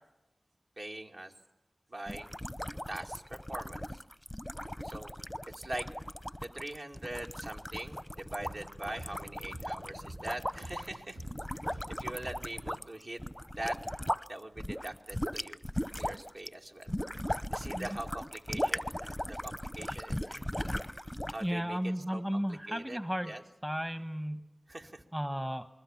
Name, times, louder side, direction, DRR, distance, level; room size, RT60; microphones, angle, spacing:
voice 1, 0.8-1.3 1.9-2.3 2.9-4.0 4.8-5.1 5.5-5.9 6.4-11.2 11.6-13.2 13.6-13.8 14.3-15.6 16.0-16.9 17.5-20.4 21.3-23.0 23.2-23.4 24.7-25.0, right 1 dB, 55° right, 3 dB, 2.4 m, -42 dB
sound 1, 2.1-14.3 14.6-21.5, equal, 5° left, 0.8 m, -38 dB
sound 2, 8.4-13.0, right 1 dB, 75° right, 3.0 m, -49 dB
voice 2, 21.4-23.3 23.6-24.5 25.1-25.6, equal, 15° right, 10 dB, 1.3 m, -34 dB
28.5 x 21.0 x 7.3 m, 0.94 s
wide cardioid pair, 60°, 0 cm